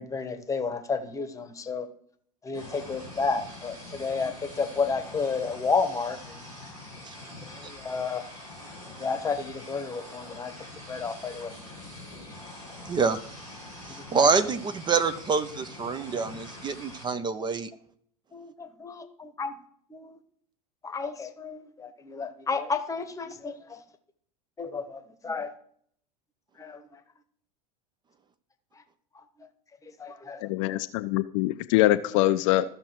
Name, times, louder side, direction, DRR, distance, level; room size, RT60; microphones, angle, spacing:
voice 1, 0.0-1.9 2.4-6.5 7.4-8.2 9.0-10.5 10.9-11.5 13.9-14.5 17.4-17.5 18.3-19.6 19.9-20.2 20.8-23.8 24.6-25.5 26.6-27.0 28.7-28.8 29.1-29.5 29.8-30.4 30.7-30.8, left 4 dB, 15° left, 9 dB, 1.0 m, -32 dB
sound 1, 2.5-17.0, left 1 dB, 80° right, 4.2 m, -44 dB
voice 2, 12.9-13.2 13.9-17.7, right 5 dB, 25° right, 13 dB, 0.6 m, -26 dB
voice 3, 30.4-32.6, left 16 dB, 55° left, 11 dB, 0.5 m, -24 dB
14.5 x 6.1 x 3.0 m, 0.63 s
hypercardioid pair, 85°, 20 cm